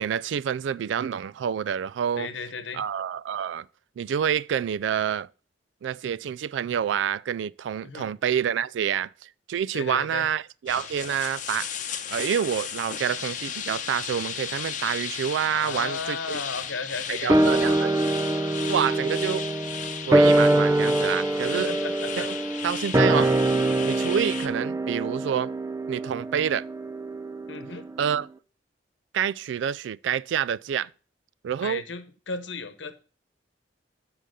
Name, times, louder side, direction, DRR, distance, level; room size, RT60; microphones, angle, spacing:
voice 1, 0.0-2.3 2.7-3.7 4.0-5.3 5.8-11.7 12.1-16.4 17.1-17.9 18.7-19.4 20.1-21.7 22.2-22.4 22.6-23.4 23.9-25.5 25.9-26.7 28.0-28.3 29.1-30.9 31.4-31.8, right 8 dB, 80° right, 0.3 m, -28 dB
voice 2, 2.2-2.8 7.8-8.1 9.7-10.3 15.5-17.3 21.5-22.3 22.6-22.7 27.5-27.9 31.6-33.0, left 4 dB, 80° left, 1.0 m, -35 dB
sound 1, 10.7-24.5, left 8 dB, 45° left, 0.8 m, -35 dB
sound 2, 17.3-27.9 28.2-28.3, right 2 dB, 15° right, 0.4 m, -24 dB
7.6 x 5.0 x 6.5 m
head